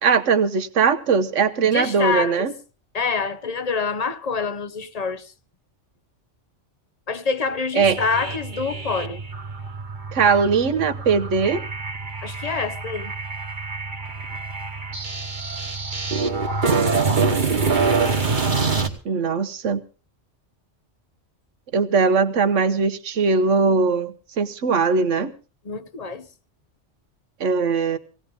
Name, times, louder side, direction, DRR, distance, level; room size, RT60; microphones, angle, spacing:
voice 1, 0.0-2.5 7.7-8.0 10.1-11.6 19.0-19.8 21.7-25.3 27.4-28.0, right 5 dB, 80° right, 1.4 m, -20 dB
voice 2, 1.6-2.5 2.9-5.3 7.1-9.2 12.2-13.1 25.6-26.3, left 5 dB, 35° left, 0.8 m, -26 dB
sound 1, 7.8-18.9, right 4 dB, 40° right, 1.4 m, -25 dB
18.0 x 17.5 x 3.6 m
omnidirectional pair, 1.2 m